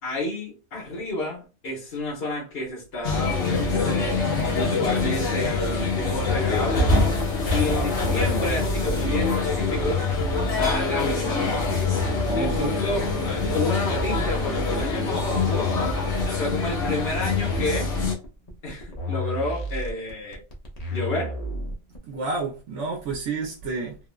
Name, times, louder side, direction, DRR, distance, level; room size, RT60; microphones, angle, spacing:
voice 1, 0.0-4.3 4.5-6.9 7.5-10.1 10.6-11.6 12.4-13.1 13.5-15.9 16.4-17.9 18.6-20.4 20.9-21.3, left 1 dB, 60° left, 1.3 m, -30 dB
sound 1, 3.0-18.1, left 3 dB, 80° left, 1.3 m, -25 dB
sound 2, 6.0-22.0, left 2 dB, 40° left, 0.7 m, -31 dB
voice 2, 12.3-12.7 22.1-24.0, right 3 dB, 90° right, 1.0 m, -30 dB
3.5 x 2.0 x 2.3 m
omnidirectional pair, 1.2 m